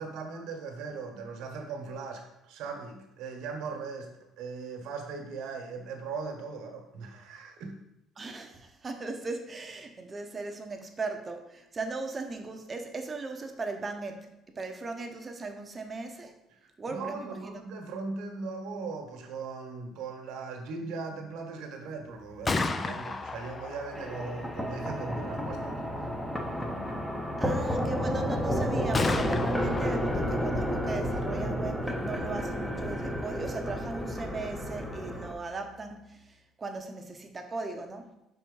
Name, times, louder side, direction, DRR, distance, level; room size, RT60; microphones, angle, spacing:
voice 1, 0.0-7.8 16.5-25.8 26.6-26.8 28.0-28.2, right 4 dB, 75° right, 3 dB, 1.4 m, -39 dB
voice 2, 8.2-14.3 14.6-16.3 16.8-17.6 27.4-38.1, right 3 dB, 25° right, 5 dB, 0.8 m, -38 dB
Gunshot gunfire, 22.2-36.0, left 3 dB, 25° left, 0.4 m, -38 dB
sound 1, 23.9-35.3, equal, 5° left, 0.8 m, -31 dB
5.6 x 4.4 x 5.5 m, 0.87 s
cardioid pair, 130°, 0 cm